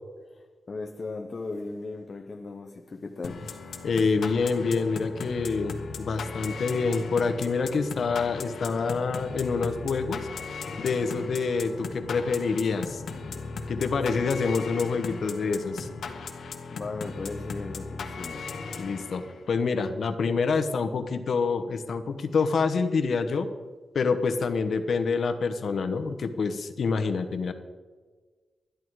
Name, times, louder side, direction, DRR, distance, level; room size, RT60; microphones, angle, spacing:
voice 1, 0.7-3.9 11.0-11.4 13.0-13.7 14.1-14.3 16.4-18.7, left 3 dB, 35° left, 0.7 m, -38 dB
sound 1, 3.2-19.5, left 4 dB, 85° left, 1.4 m, -38 dB
voice 2, 3.8-10.3 10.8-13.0 13.7-15.9 18.8-23.5 23.9-27.5, left 4 dB, 60° left, 0.9 m, -27 dB
13.0 x 11.0 x 4.7 m
wide cardioid pair, 175°, 0 cm